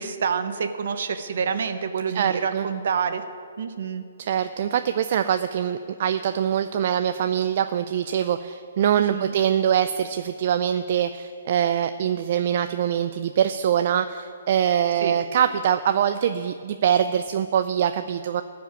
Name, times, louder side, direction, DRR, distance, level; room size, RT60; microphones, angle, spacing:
voice 1, 0.0-3.2 3.6-4.0 8.9-9.3 15.0-15.2, right 6 dB, 65° right, 8 dB, 1.0 m, -27 dB
voice 2, 2.1-2.7 4.2-18.4, right 9 dB, 45° right, 9 dB, 0.4 m, -23 dB
15.0 x 5.1 x 9.2 m, 2.3 s
hypercardioid pair, 155°, 0 cm